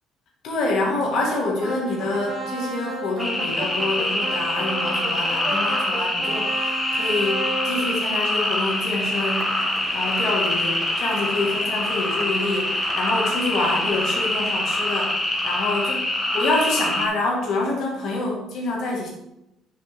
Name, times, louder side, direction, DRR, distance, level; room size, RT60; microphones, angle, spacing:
voice 1, 0.4-9.5 9.9-15.1 15.4-16.0 16.3-19.1, left 2 dB, 65° left, -1 dB, 2.3 m, -26 dB
sound 1, 1.6-15.8, right 2 dB, 40° right, 1.9 m, -35 dB
sound 2, 3.2-17.1, left 1 dB, 15° left, 1.9 m, -25 dB
6.9 x 5.1 x 4.8 m, 0.88 s
hypercardioid pair, 60°, 0 cm